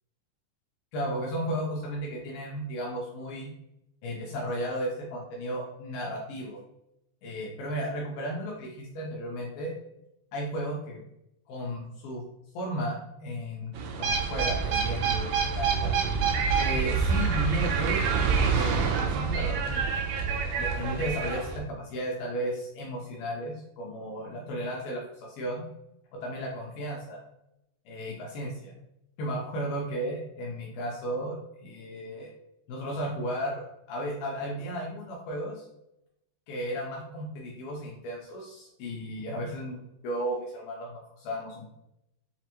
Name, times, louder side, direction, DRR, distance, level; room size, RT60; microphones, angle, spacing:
voice 1, 0.9-3.5 4.0-6.6 7.2-9.7 10.3-11.0 11.5-12.2 12.5-13.7 14.0-15.9 16.6-18.0 18.5-19.9 20.6-25.6 26.1-27.2 27.9-28.7 29.2-32.3 32.7-35.6 36.5-39.8 40.0-41.6, equal, 80° left, -2 dB, 2.2 m, -34 dB
sound 1, 13.7-21.6, right 5 dB, 80° right, 2.3 m, -27 dB
7.0 x 2.5 x 2.9 m, 0.84 s
omnidirectional pair, 4.8 m